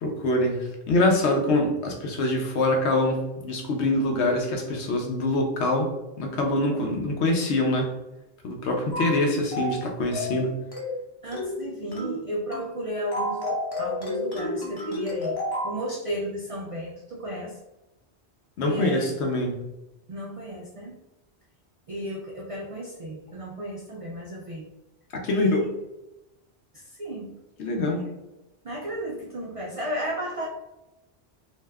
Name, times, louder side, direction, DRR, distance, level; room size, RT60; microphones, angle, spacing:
voice 1, 0.0-5.9 6.2-7.9 8.4-10.5 18.6-19.6 25.2-25.6 27.6-28.1, left 2 dB, 85° left, 2 dB, 0.9 m, -24 dB
sound 1, 8.9-9.2 9.5-9.8 10.1-10.4 10.7-11.0 11.3-11.6 11.9-12.2 12.5-12.7 13.1-15.8, left 1 dB, 25° left, 0.7 m, -30 dB
voice 2, 11.2-15.4 15.6-17.6 18.6-19.2 20.1-21.0 21.9-24.7 25.3-25.6 26.7-27.3 27.8-28.0 28.6-30.5, equal, 65° right, -2 dB, 0.3 m, -34 dB
2.6 x 2.1 x 3.4 m, 0.97 s
omnidirectional pair, 1.1 m